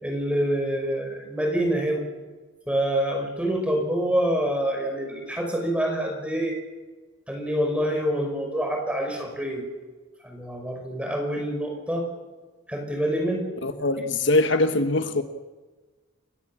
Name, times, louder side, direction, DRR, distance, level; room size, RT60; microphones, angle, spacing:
voice 1, 0.0-2.0 2.7-6.6 7.3-9.7 10.2-12.1 12.7-13.5, equal, 5° right, 5.7 m, -26 dB
voice 2, 13.6-15.2, left 2 dB, 65° left, 1.3 m, -22 dB
30.0 x 17.5 x 7.4 m
head